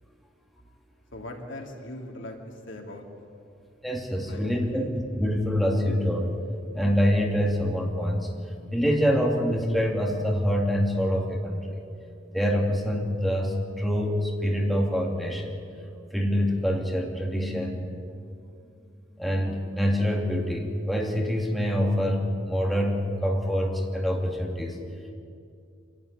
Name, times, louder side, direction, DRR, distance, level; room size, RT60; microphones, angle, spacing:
voice 1, 1.1-3.0 4.2-4.9, left 1 dB, 75° left, 1 dB, 2.9 m, -40 dB
voice 2, 3.8-4.9 5.2-6.3 6.7-8.3 8.7-11.6 12.3-15.6 16.1-17.8 19.2-24.8, equal, ahead, -1 dB, 2.8 m, -25 dB
27.5 x 12.0 x 10.0 m, 2.4 s
head